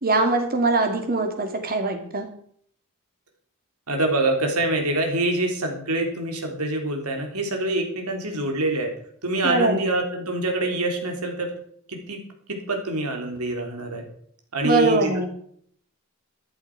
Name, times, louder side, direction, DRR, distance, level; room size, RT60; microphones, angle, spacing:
voice 1, 0.0-2.3 9.4-9.8 14.6-15.3, right 2 dB, 45° right, 5 dB, 2.6 m, -22 dB
voice 2, 3.9-8.9 9.2-11.5 11.9-12.2 12.5-14.0 14.5-15.3, right 2 dB, 85° right, 3 dB, 3.5 m, -25 dB
14.0 x 11.5 x 4.9 m, 0.62 s
head